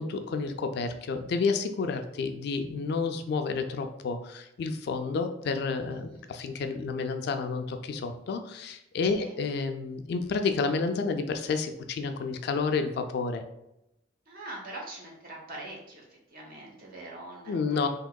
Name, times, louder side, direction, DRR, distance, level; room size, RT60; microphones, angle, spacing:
voice 1, 0.0-13.4 17.5-17.9, left 4 dB, 60° left, 7 dB, 0.3 m, -30 dB
voice 2, 5.9-6.3 9.0-9.4 14.3-17.9, right 1 dB, 50° right, -2 dB, 0.9 m, -43 dB
3.6 x 2.8 x 2.2 m, 0.86 s
head